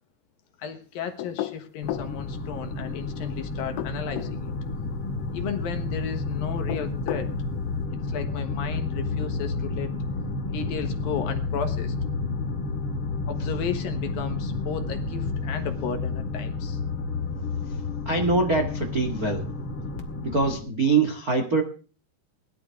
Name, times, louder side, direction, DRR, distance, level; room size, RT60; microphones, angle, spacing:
voice 1, 0.6-4.5 5.3-7.3 8.1-9.9 10.5-11.9 13.3-16.8, left 7 dB, 65° left, 7 dB, 2.6 m, -34 dB
sound 1, 1.2-2.1 3.6-4.4 6.5-7.3, left 15 dB, 85° left, 3.2 m, -33 dB
sound 2, 1.8-20.6, left 3 dB, 45° left, 1.8 m, -31 dB
voice 2, 18.0-19.5 20.2-21.6, right 3 dB, 85° right, 4 dB, 0.8 m, -23 dB
20.5 x 13.0 x 3.6 m, 0.38 s
omnidirectional pair, 5.2 m